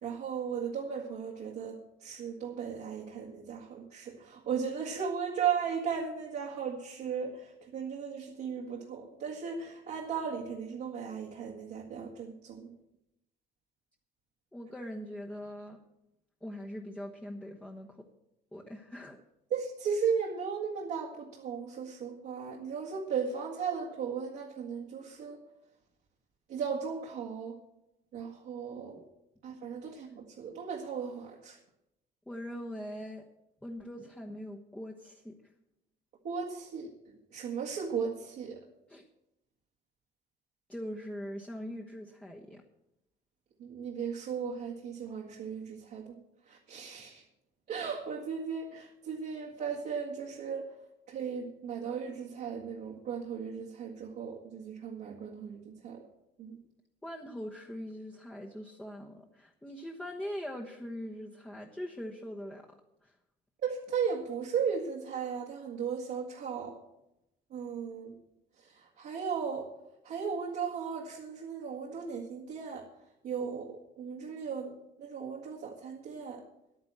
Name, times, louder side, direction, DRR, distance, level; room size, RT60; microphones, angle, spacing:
voice 1, 0.0-12.7 19.5-25.4 26.5-27.6 28.1-29.0 29.4-31.6 36.2-36.9 37.3-38.6 43.6-46.2 46.5-47.2 47.7-50.7 51.1-56.0 56.4-56.6 63.6-66.8 67.5-68.2 68.6-69.7 70.0-72.9 73.2-74.7 75.0-76.4, right 6 dB, 70° right, -3 dB, 1.8 m, -36 dB
voice 2, 14.5-15.8 16.4-18.0 18.5-19.2 28.9-29.0 32.3-33.3 33.6-35.4 38.9-39.0 40.7-42.6 57.0-63.1, equal, 5° left, -1 dB, 1.1 m, -42 dB
10.5 x 9.5 x 7.5 m, 0.87 s
cardioid pair, 110°, 17 cm